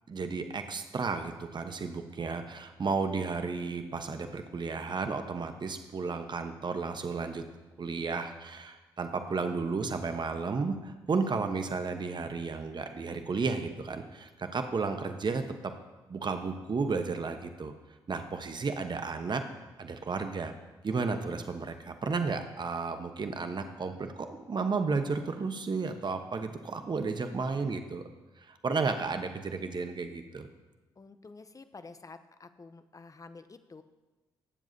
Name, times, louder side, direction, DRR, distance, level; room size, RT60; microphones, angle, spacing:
voice 1, 0.1-7.4 7.8-15.4 16.1-17.7 18.1-19.4 19.8-20.5 20.8-28.0 28.4-30.5, right 4 dB, 40° right, 7 dB, 1.1 m, -33 dB
voice 2, 31.0-33.8, left 3 dB, 30° left, 11 dB, 0.8 m, -50 dB
18.5 x 7.4 x 2.8 m, 1.2 s
hypercardioid pair, 40°, 11 cm